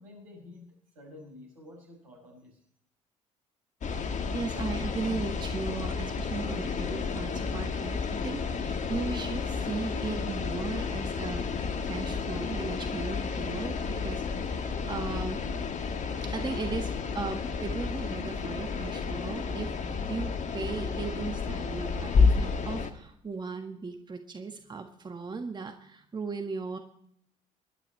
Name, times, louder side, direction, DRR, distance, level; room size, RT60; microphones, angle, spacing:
voice 1, 0.0-2.6, left 2 dB, 80° right, -1 dB, 5.9 m, -50 dB
sound 1, 3.8-22.9, left 5 dB, 40° left, 1.6 m, -31 dB
voice 2, 4.3-15.4 16.2-26.8, right 4 dB, 25° right, 5 dB, 1.6 m, -37 dB
23.5 x 11.5 x 3.3 m, 0.66 s
figure-of-eight pair, 55°, 18 cm